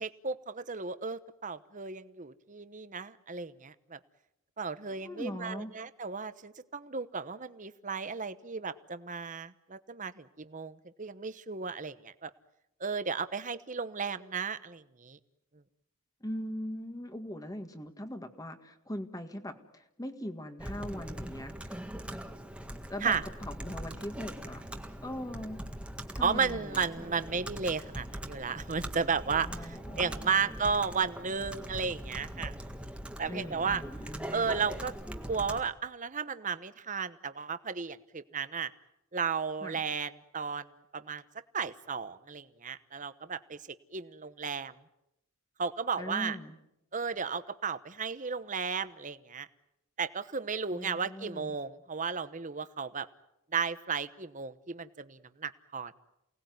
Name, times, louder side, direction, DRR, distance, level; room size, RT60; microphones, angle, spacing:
voice 1, 0.0-4.0 4.6-12.3 12.8-15.2 23.0-23.2 26.2-32.5 33.2-33.8 34.3-34.9 35.3-38.7 39.1-40.7 40.9-41.2 41.5-43.6 43.9-44.7 45.6-46.4 46.9-49.5 50.0-53.1 53.5-55.9, right 5 dB, 35° right, 13 dB, 1.0 m, -34 dB
voice 2, 5.0-5.7 16.2-21.7 22.9-23.1 23.4-24.6 25.0-25.6 26.1-26.8 29.4-30.6 33.3-34.6 39.6-39.8 46.0-46.6 50.7-51.6, equal, 15° left, 7 dB, 1.8 m, -41 dB
Computer keyboard, 20.6-35.6, right 1 dB, 5° right, 1.7 m, -41 dB
28.5 x 19.0 x 9.5 m, 0.87 s
head